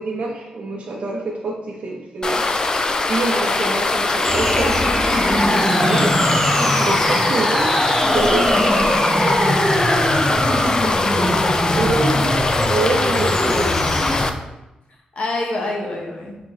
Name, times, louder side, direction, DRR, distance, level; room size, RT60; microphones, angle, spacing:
voice 1, 0.0-2.4 3.1-6.1 6.8-8.6 11.8-13.8, right 2 dB, 50° right, -3 dB, 0.7 m, -26 dB
sound 1, 2.2-14.3, left 3 dB, 30° left, 0.3 m, -21 dB
sound 2, 4.2-14.2, equal, ahead, 0.7 m, -21 dB
voice 2, 8.5-8.8 10.2-11.4 15.2-16.4, left 2 dB, 50° left, -1 dB, 1.0 m, -28 dB
4.4 x 3.7 x 3.0 m, 0.98 s
cardioid pair, 95°, 3 cm